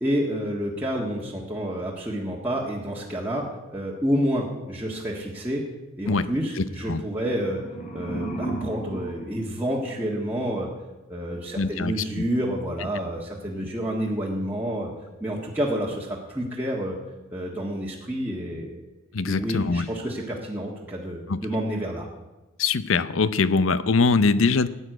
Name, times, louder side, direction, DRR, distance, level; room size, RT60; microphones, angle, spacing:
voice 1, 0.0-3.5 3.7-5.6 6.0-7.6 7.9-10.7 11.1-14.9 15.2-17.0 17.3-18.8 19.2-22.1, equal, 10° right, -5 dB, 1.6 m, -29 dB
voice 2, 6.1-7.0 11.6-12.2 19.1-19.9 21.3-21.4 22.6-24.7, left 4 dB, 65° left, 15 dB, 0.7 m, -23 dB
sound 1, 7.3-10.3, right 2 dB, 40° left, 2.8 m, -35 dB
14.5 x 9.9 x 7.9 m, 1.1 s
head